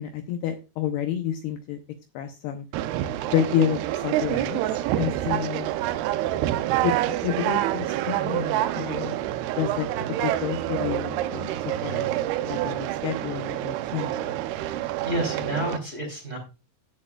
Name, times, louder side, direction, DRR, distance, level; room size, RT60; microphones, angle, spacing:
voice 1, 0.0-1.8 2.1-2.7 3.3-4.6 5.0-5.7 6.8-6.9 7.2-9.2 9.5-9.9 10.2-12.1 12.5-14.3, left 10 dB, 80° left, 5 dB, 2.5 m, -29 dB
Conversation, 2.7-15.8, right 13 dB, 85° right, 2.2 m, -27 dB
voice 2, 14.8-16.4, right 1 dB, 20° right, 1 dB, 3.0 m, -30 dB
17.0 x 6.6 x 2.4 m, 0.29 s
omnidirectional pair, 5.3 m